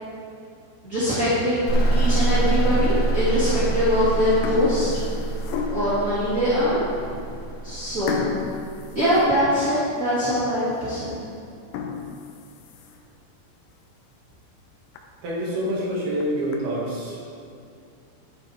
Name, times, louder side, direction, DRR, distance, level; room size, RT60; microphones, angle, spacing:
voice 1, 0.8-5.0 5.7-7.1 7.6-8.2 8.9-11.1, equal, 30° right, -12 dB, 1.5 m, -23 dB
sound 1, 1.6-2.2 2.7-2.8 3.7-3.9 4.2-6.1 6.7-6.8 7.1-7.3 8.1-9.8 10.2-10.3 10.8-10.9 11.5-13.2 13.6-13.7 14.1-14.2 14.6-14.7 15.0-15.1 16.0-16.6, left 6 dB, 85° left, 3.2 m, -33 dB
sound 2, 1.7-9.2, right 2 dB, 55° left, 0.8 m, -25 dB
voice 2, 15.2-17.3, equal, 55° right, -6 dB, 3.7 m, -27 dB
11.5 x 10.5 x 3.6 m, 2.5 s
omnidirectional pair, 5.7 m